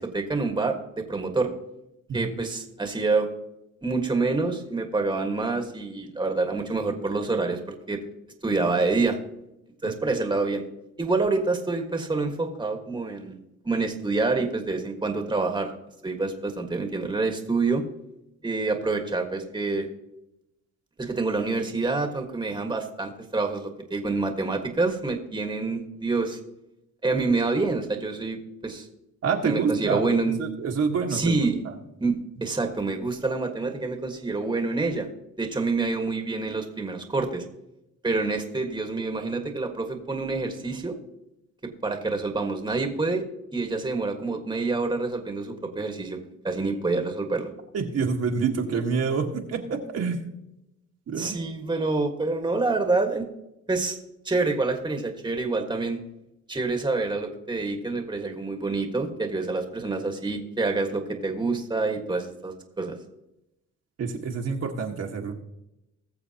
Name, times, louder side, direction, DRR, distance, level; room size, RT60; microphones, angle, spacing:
voice 1, 0.0-1.5 2.1-3.3 3.8-7.6 7.9-8.0 8.4-9.2 9.8-10.6 11.0-13.4 13.6-15.7 16.0-17.8 18.4-19.9 21.0-26.4 27.0-28.9 29.4-30.4 31.1-31.6 32.0-35.1 35.4-37.4 38.0-41.0 41.8-43.3 43.5-46.2 46.4-47.5 51.2-53.3 53.7-54.0 54.2-56.0 56.5-63.0, right 3 dB, 15° right, 4 dB, 1.5 m, -27 dB
voice 2, 29.2-30.0 30.4-31.7 47.7-50.2 51.1-51.4 64.0-65.3, right 5 dB, 55° right, 2 dB, 1.5 m, -27 dB
20.0 x 6.9 x 2.9 m, 0.87 s
cardioid pair, 90°, 30 cm